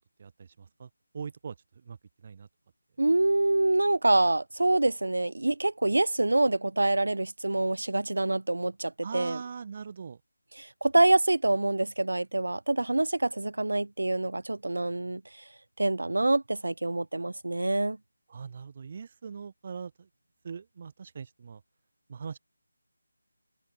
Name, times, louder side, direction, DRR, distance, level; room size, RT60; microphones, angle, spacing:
voice 1, 0.2-1.6 1.8-2.0 2.2-2.5 9.0-10.2 18.3-20.1 20.4-21.6 22.1-22.4, right 6 dB, 35° right, 2.1 m, -41 dB
voice 2, 3.0-9.4 10.6-15.2 15.8-18.0, right 2 dB, 70° right, 3.2 m, -26 dB
figure-of-eight pair, 160°, 0 cm